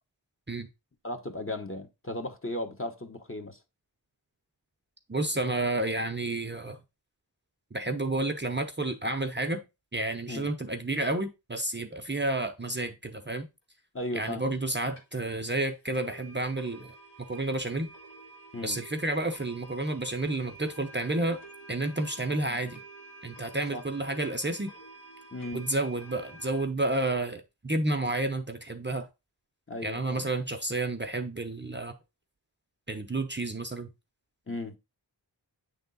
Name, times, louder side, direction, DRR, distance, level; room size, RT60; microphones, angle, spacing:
voice 1, 1.0-3.6 10.3-10.5 13.9-14.5 18.5-18.8 23.7-23.8 25.3-25.7 29.7-30.3 34.5-34.8, left 1 dB, 30° left, 1.1 m, -36 dB
voice 2, 5.1-6.8 7.7-9.6 9.9-13.5 14.1-17.9 18.6-21.4 21.7-22.8 23.2-24.7 25.5-29.1 29.8-31.9 32.9-33.9, right 2 dB, 25° right, 0.7 m, -30 dB
sound 1, 14.7-14.8 15.0-15.1 15.4-15.5 15.9-26.7, right 3 dB, 70° left, 2.2 m, -49 dB
8.4 x 3.5 x 4.0 m
wide cardioid pair, 60°, 44 cm